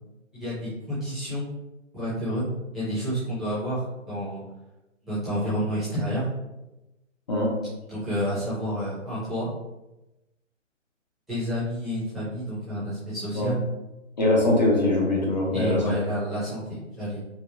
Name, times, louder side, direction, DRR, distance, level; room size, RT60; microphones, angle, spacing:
voice 1, 0.3-1.5 1.9-2.5 2.7-3.8 4.1-4.4 5.0-6.3 7.9-9.5 11.3-13.6 15.5-17.2, equal, ahead, -16 dB, 0.7 m, -29 dB
voice 2, 14.2-15.8, left 1 dB, 35° left, -3 dB, 0.7 m, -22 dB
5.0 x 2.2 x 2.6 m, 1.0 s
figure-of-eight pair, 150°, 39 cm